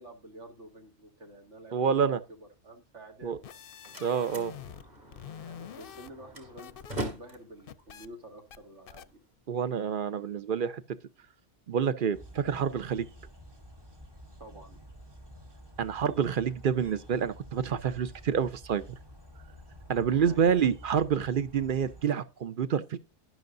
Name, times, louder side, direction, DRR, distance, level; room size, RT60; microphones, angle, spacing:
voice 1, 0.0-3.6 5.4-9.2 14.4-14.8 20.1-20.7, right 1 dB, 80° right, 2.4 m, -49 dB
voice 2, 1.7-2.2 3.2-3.4 4.0-4.5 9.5-10.8 11.7-13.1 15.8-19.0 19.9-23.0, right 7 dB, 55° right, 0.8 m, -28 dB
sound 1, 3.2-4.9 5.1-7.1 7.4-8.1 8.5-8.6 8.9-9.1, left 9 dB, 55° left, 0.7 m, -46 dB
Slam, 3.4-9.3, right 1 dB, 35° right, 2.4 m, -43 dB
sound 2, 12.1-22.1, equal, 20° right, 1.0 m, -50 dB
12.5 x 10.5 x 2.6 m
omnidirectional pair, 1.2 m